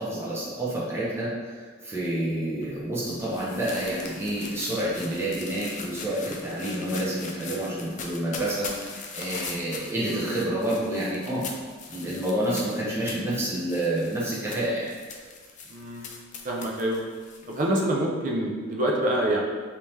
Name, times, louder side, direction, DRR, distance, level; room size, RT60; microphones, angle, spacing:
voice 1, 0.0-11.5 11.9-14.9, right 1 dB, 10° right, -7 dB, 0.8 m, -29 dB
sound 1, 2.6-17.6, left 4 dB, 35° left, 0.4 m, -41 dB
voice 2, 9.9-10.2 15.7-16.0 16.4-17.0 17.5-19.4, right 1 dB, 40° right, -2 dB, 0.5 m, -26 dB
3.6 x 2.8 x 3.1 m, 1.5 s
head